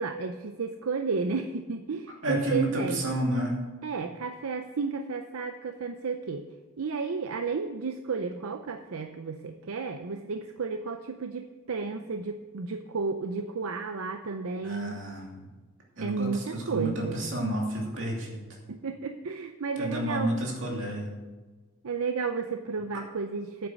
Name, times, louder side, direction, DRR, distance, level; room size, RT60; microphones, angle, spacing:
voice 1, 0.0-3.0 3.8-6.4 6.8-15.0 16.0-17.2 18.7-20.3 21.8-23.7, right 4 dB, 80° right, 7 dB, 0.6 m, -32 dB
voice 2, 2.2-3.5 11.9-12.0 14.6-15.4 16.0-18.4 19.8-21.1, right 1 dB, 60° right, -1 dB, 2.7 m, -30 dB
9.2 x 8.0 x 6.3 m, 1.3 s
head